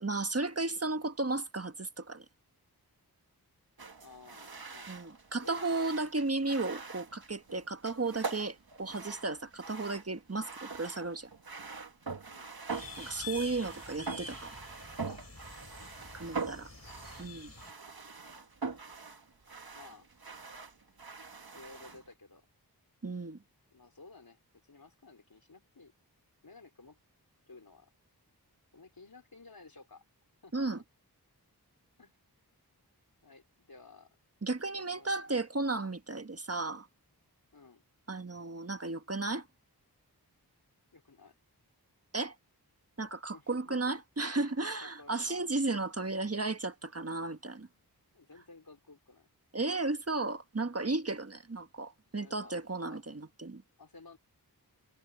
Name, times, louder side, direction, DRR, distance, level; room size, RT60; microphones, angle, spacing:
voice 1, 0.0-2.2 4.9-11.3 13.0-14.5 16.1-16.7 17.2-17.5 23.0-23.4 30.5-30.8 34.4-36.9 38.1-39.5 42.1-42.3 43.0-47.7 49.5-53.6, right 3 dB, 40° right, 1.4 m, -34 dB
sound 1, 3.8-22.1, right 4 dB, 65° right, 1.6 m, -44 dB
voice 2, 4.0-4.9 5.4-5.7 12.3-12.6 16.4-17.1 19.7-20.1 21.5-22.5 23.7-25.9 26.4-27.0 27.5-27.9 28.7-30.0 30.4-30.8 32.0-32.2 33.2-34.2 34.7-35.4 37.5-37.8 40.9-41.3 43.3-44.0 44.8-45.5 48.1-49.3 51.1-51.3 52.2-52.6 52.9-53.0 53.8-54.2, left 3 dB, 65° left, 4.1 m, -55 dB
sound 2, 12.7-17.7, left 3 dB, 40° left, 4.2 m, -47 dB
wide cardioid pair, 60°, 39 cm